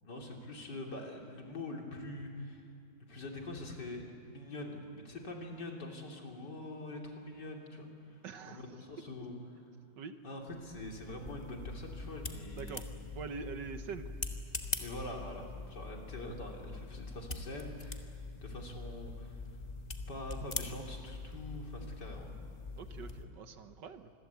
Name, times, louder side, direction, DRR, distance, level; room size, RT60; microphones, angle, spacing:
voice 1, 0.0-2.7 3.1-9.3 10.2-12.9 14.8-19.6 20.1-22.4 23.1-23.2, left 1 dB, 55° left, 1 dB, 3.8 m, -44 dB
voice 2, 8.2-8.6 10.0-10.2 12.6-12.9 13.1-14.1 22.8-24.1, right 5 dB, 65° right, 9 dB, 1.6 m, -44 dB
sound 1, 10.5-23.3, left 3 dB, 20° left, 1.5 m, -43 dB
27.0 x 21.5 x 8.3 m, 2.6 s
omnidirectional pair, 2.2 m